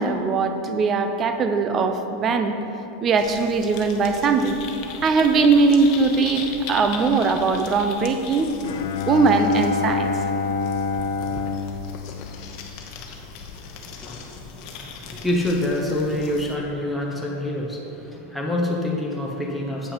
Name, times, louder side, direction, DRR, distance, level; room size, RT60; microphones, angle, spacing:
voice 1, 0.0-2.5 3.0-4.6 5.0-8.5 9.1-10.1, right 4 dB, 30° right, 7 dB, 0.6 m, -20 dB
sound 1, 3.2-16.6, left 5 dB, 50° left, 1.0 m, -39 dB
Bowed string instrument, 8.6-13.0, left 5 dB, 80° left, 0.5 m, -27 dB
voice 2, 12.9-19.9, left 1 dB, ahead, -3 dB, 1.0 m, -27 dB
8.3 x 5.5 x 5.7 m, 2.9 s
supercardioid pair, 135°, 0 cm